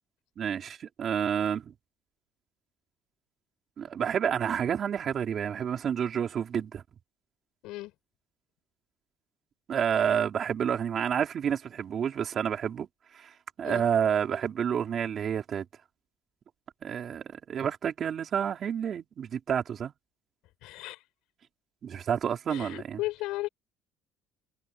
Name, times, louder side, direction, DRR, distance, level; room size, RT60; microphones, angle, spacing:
voice 1, 0.4-1.7 3.8-6.8 9.7-12.9 13.1-13.3 13.6-15.6 16.8-19.9 21.8-23.0, right 8 dB, 40° right, 4.3 m, -29 dB
voice 2, 20.6-21.0 22.5-23.5, left 18 dB, 80° left, 6.1 m, -35 dB
cardioid pair, 135°, 0 cm